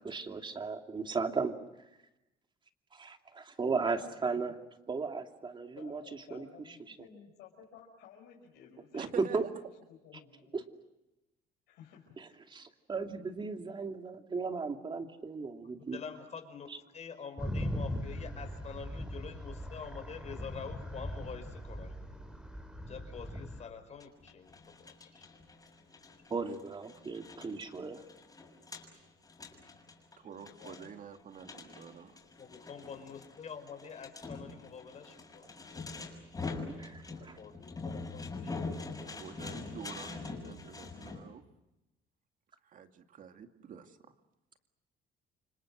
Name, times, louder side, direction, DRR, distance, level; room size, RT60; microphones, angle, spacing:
voice 1, 0.0-1.6 2.9-4.5 4.9-6.0 6.3-6.5 6.9-7.0 8.9-9.4 10.5-10.6 12.2-16.0 26.3-28.0 36.8-37.4, right 4 dB, 30° right, 5 dB, 2.6 m, -36 dB
voice 2, 5.7-10.6 11.7-12.4 30.2-30.9 31.6-31.8 32.9-33.2, left 8 dB, 85° left, -2 dB, 5.2 m, -55 dB
voice 3, 9.0-9.4 30.2-32.2 39.0-41.4 42.6-44.1, right 7 dB, 50° right, 6 dB, 2.4 m, -48 dB
voice 4, 15.6-16.7 16.9-21.9 22.9-24.5 25.1-25.2 32.4-35.4 37.4-38.4, left 6 dB, 40° left, 7 dB, 5.4 m, -46 dB
sound 1, 17.4-23.6, equal, 5° right, 3.8 m, -40 dB
sound 2, 24.0-41.2, left 3 dB, 20° left, 6.5 m, -44 dB
29.5 x 25.5 x 6.5 m, 0.97 s
cardioid pair, 110°, 17 cm